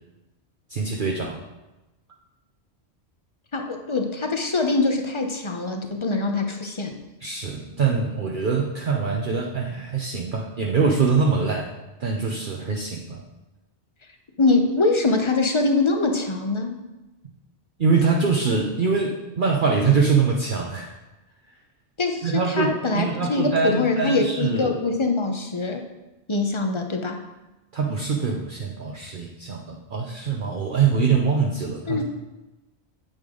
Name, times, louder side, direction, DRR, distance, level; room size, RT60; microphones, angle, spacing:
voice 1, 0.7-1.4 7.2-11.7 12.0-13.2 17.8-20.9 22.2-24.7 27.7-32.0, right 5 dB, 50° right, 0 dB, 0.9 m, -23 dB
voice 2, 3.5-7.0 14.4-16.7 22.0-25.8 26.3-27.2 31.9-32.0, left 3 dB, 30° left, 4 dB, 0.8 m, -23 dB
9.0 x 8.1 x 3.8 m, 1.1 s
omnidirectional pair, 1.2 m